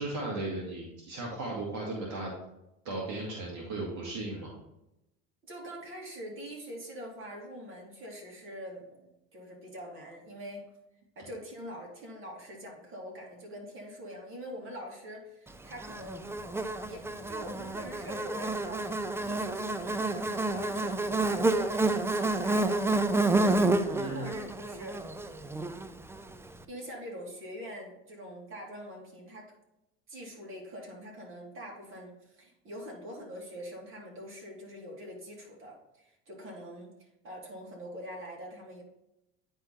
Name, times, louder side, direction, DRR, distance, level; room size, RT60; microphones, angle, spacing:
voice 1, 0.0-2.3 2.9-4.5 23.9-24.4, right 2 dB, 65° right, -3 dB, 1.9 m, -36 dB
voice 2, 5.4-10.7 11.2-16.4 16.8-25.0 25.4-25.8 26.7-29.4 30.1-38.8, equal, 40° right, -2 dB, 2.8 m, -44 dB
Buzz, 15.8-26.2, right 2 dB, 10° right, 0.4 m, -29 dB
9.7 x 3.7 x 4.3 m, 0.88 s
supercardioid pair, 85°, 33 cm